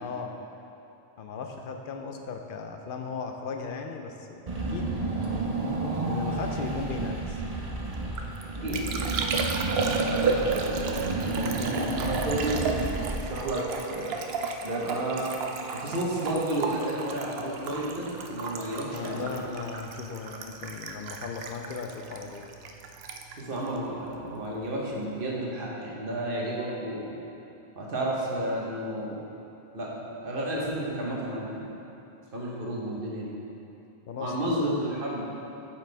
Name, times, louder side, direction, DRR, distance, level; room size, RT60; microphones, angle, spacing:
voice 1, 0.0-0.4 1.2-4.4 4.7-5.1 6.0-7.4 18.8-22.5 34.1-34.6, left 5 dB, 65° left, 4 dB, 0.7 m, -37 dB
Car / Engine, 4.5-13.6, right 2 dB, 40° right, 0.8 m, -31 dB
Liquid, 7.9-24.6 24.8-25.4, right 4 dB, 75° right, 0.8 m, -33 dB
voice 2, 10.0-14.2 14.6-15.3 15.7-19.5 23.4-27.1 27.7-29.2 29.7-31.7 32.3-33.3 34.2-35.2, right 1 dB, 60° right, -4 dB, 1.3 m, -32 dB
8.4 x 5.9 x 3.4 m, 2.9 s
omnidirectional pair, 1.0 m